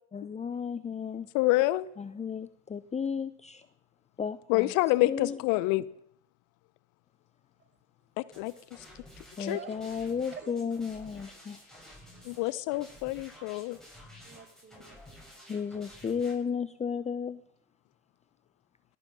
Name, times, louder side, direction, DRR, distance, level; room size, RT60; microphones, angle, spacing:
voice 1, 0.1-1.3 2.0-3.6 4.2-4.6 5.0-5.3 9.4-11.6 15.5-17.4, left 6 dB, 20° left, 0.6 m, -33 dB
voice 2, 1.3-1.9 4.5-5.8 8.2-8.8 9.5-9.6 12.2-13.8, left 19 dB, 60° left, 0.6 m, -27 dB
sound 1, 8.3-16.3, equal, ahead, 7.4 m, -52 dB
voice 3, 9.4-10.5 14.2-15.4, right 6 dB, 30° right, 2.6 m, -47 dB
18.0 x 9.3 x 6.1 m
hypercardioid pair, 65°, 35 cm